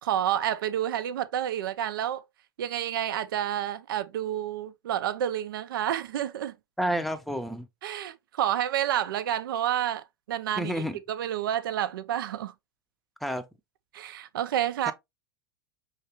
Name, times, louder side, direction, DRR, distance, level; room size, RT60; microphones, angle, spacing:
voice 1, 0.0-2.2 2.6-6.5 7.8-12.5 13.9-14.9, right 11 dB, 65° right, 0.4 m, -29 dB
voice 2, 6.8-7.7 10.6-11.0 13.2-13.4 14.9-15.0, equal, ahead, 0.6 m, -29 dB
5.5 x 3.1 x 2.9 m
figure-of-eight pair, 90°, 12 cm